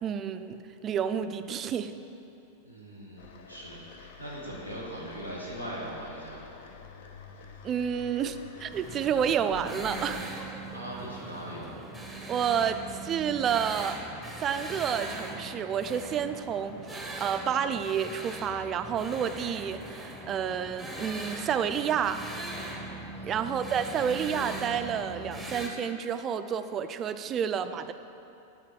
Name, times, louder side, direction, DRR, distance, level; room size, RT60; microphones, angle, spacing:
voice 1, 0.0-2.0 7.6-10.2 12.3-14.0 14.4-22.2 23.2-27.9, right 8 dB, 30° right, 11 dB, 0.3 m, -30 dB
voice 2, 2.6-6.5 10.7-11.7 23.1-23.6, right 1 dB, 85° left, -4 dB, 1.4 m, -40 dB
sound 1, 3.2-10.2, left 5 dB, 55° left, 0.6 m, -48 dB
sound 2, 8.7-25.7, right 2 dB, ahead, 0.8 m, -40 dB
7.3 x 4.3 x 6.4 m, 2.8 s
figure-of-eight pair, 90°, 0 cm